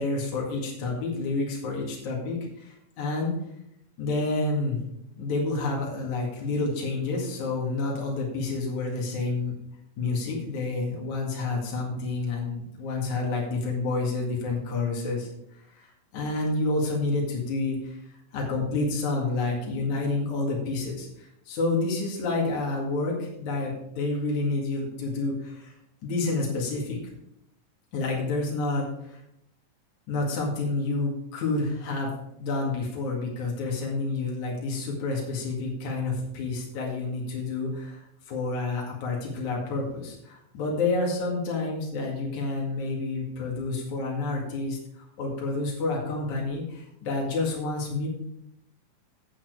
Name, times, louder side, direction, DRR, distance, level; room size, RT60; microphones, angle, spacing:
voice 1, 0.0-3.3 4.0-4.8 5.2-9.5 10.0-15.3 15.8-18.0 18.3-25.7 26.0-27.0 27.9-29.2 30.1-32.1 32.4-48.1, left 3 dB, 65° left, -2 dB, 3.4 m, -29 dB
8.8 x 8.7 x 4.8 m, 0.78 s
omnidirectional pair, 3.8 m